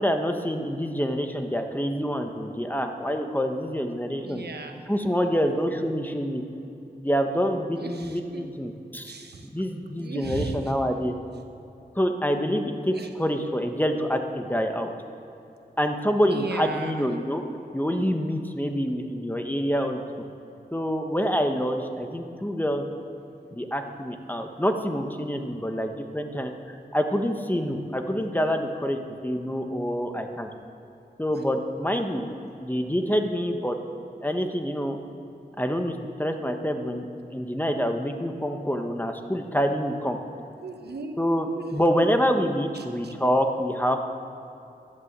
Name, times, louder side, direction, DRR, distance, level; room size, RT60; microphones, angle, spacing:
voice 1, 0.0-4.5 4.9-6.4 7.0-9.1 9.4-11.1 11.9-14.9 15.8-17.4 17.7-20.0 20.7-22.8 23.5-30.5 31.2-32.3 32.6-33.8 34.2-35.0 35.6-37.1 37.3-40.2 41.2-44.0, equal, 10° left, 5 dB, 1.3 m, -26 dB
voice 2, 4.2-4.8 7.8-7.9 8.3-8.4 9.1-9.4 10.0-10.6 12.9-13.1 16.3-17.0 40.6-41.1 41.6-41.7 43.0-43.1, right 3 dB, 85° right, 5 dB, 1.2 m, -35 dB
13.0 x 11.0 x 7.5 m, 2.8 s
wide cardioid pair, 55°, 17 cm